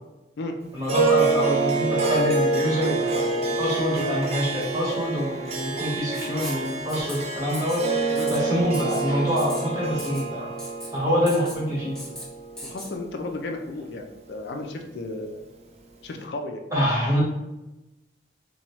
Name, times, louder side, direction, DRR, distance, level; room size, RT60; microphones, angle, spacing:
voice 1, 0.7-10.5 10.9-12.0 16.7-17.2, equal, 20° right, -6 dB, 1.0 m, -26 dB
Harp, 0.8-13.4, right 3 dB, 35° right, 0.4 m, -27 dB
Writing, 6.1-6.6 6.9-7.2 7.5-7.8 8.1-8.4 8.7-9.0 9.4-9.6 10.0-10.2 10.6-10.9 11.3-11.6 11.9-12.2 12.6-12.9, left 1 dB, 5° left, 0.7 m, -38 dB
voice 2, 12.6-15.4 16.0-16.6, left 2 dB, 65° left, 3 dB, 0.4 m, -34 dB
3.0 x 2.2 x 2.8 m, 0.98 s
head